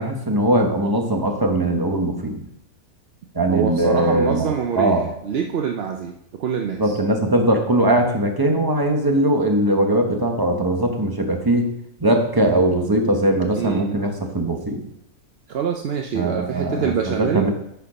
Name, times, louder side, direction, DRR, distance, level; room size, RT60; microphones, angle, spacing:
voice 1, 0.0-2.4 3.3-5.1 6.8-11.7 12.0-14.8 16.1-17.5, right 1 dB, 15° right, 3 dB, 0.9 m, -20 dB
voice 2, 3.5-7.0 13.5-14.0 15.5-17.5, right 7 dB, 60° right, 3 dB, 0.7 m, -25 dB
10.0 x 4.7 x 5.0 m, 0.79 s
omnidirectional pair, 1.6 m